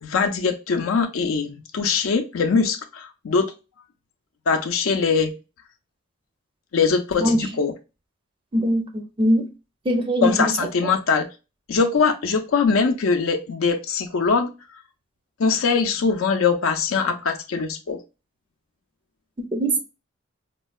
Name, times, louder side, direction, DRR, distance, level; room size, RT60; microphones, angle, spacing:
voice 1, 0.0-3.5 4.5-5.3 6.7-7.7 10.2-11.3 11.7-14.5 15.4-18.0, left 5 dB, 85° left, 0.5 m, -22 dB
voice 2, 8.5-9.5 9.8-10.5 19.4-19.8, equal, 25° right, 0.4 m, -21 dB
4.4 x 2.1 x 2.2 m
head